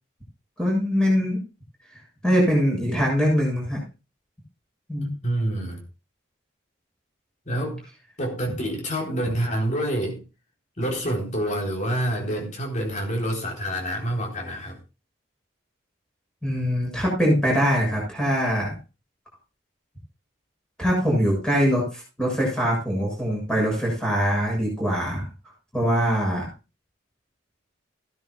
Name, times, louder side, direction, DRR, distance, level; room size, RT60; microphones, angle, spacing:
voice 1, 0.6-1.4 2.2-3.8 4.9-5.1 16.4-18.7 20.8-25.3 25.7-26.5, equal, 5° left, -2 dB, 7.0 m, -22 dB
voice 2, 5.0-5.8 7.5-7.9 8.2-10.2 10.8-14.8, right 1 dB, 35° left, 2 dB, 3.8 m, -27 dB
15.5 x 12.5 x 2.4 m, 0.30 s
head